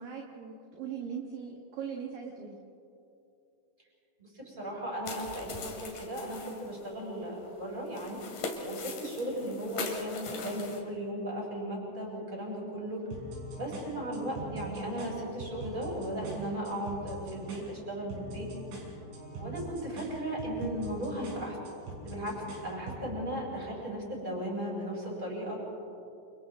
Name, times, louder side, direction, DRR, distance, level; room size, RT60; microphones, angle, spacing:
voice 1, 0.0-2.6, right 7 dB, 60° right, 0 dB, 2.8 m, -40 dB
voice 2, 4.2-13.1 13.5-18.5 19.4-21.6 22.0-25.6, right 1 dB, 10° right, -4 dB, 6.9 m, -36 dB
sound 1, 5.0-10.8, left 4 dB, 50° left, 3.4 m, -41 dB
sound 2, 13.1-23.1, right 2 dB, 80° right, 7.8 m, -43 dB
29.5 x 29.5 x 3.7 m, 2.7 s
omnidirectional pair, 5.5 m